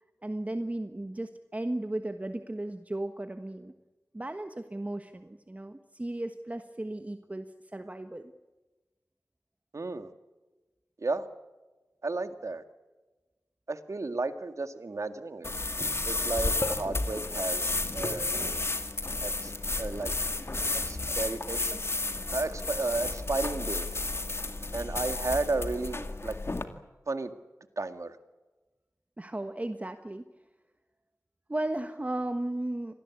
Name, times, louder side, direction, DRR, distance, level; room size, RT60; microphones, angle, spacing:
voice 1, 0.2-3.7 4.1-8.3 29.2-30.3 31.5-32.9, right 1 dB, 25° right, 7 dB, 1.3 m, -35 dB
voice 2, 9.7-10.1 11.0-11.3 12.0-12.6 13.7-15.5 16.0-18.5 19.2-19.5 19.8-20.1 20.7-21.8 22.3-23.9 24.7-26.3 27.1-27.3 27.8-28.1, right 3 dB, 60° right, 9 dB, 2.0 m, -33 dB
sound 1, 15.4-26.6, left 2 dB, 45° left, 2.2 m, -32 dB
26.5 x 19.0 x 8.5 m, 1.2 s
wide cardioid pair, 70°, 6 cm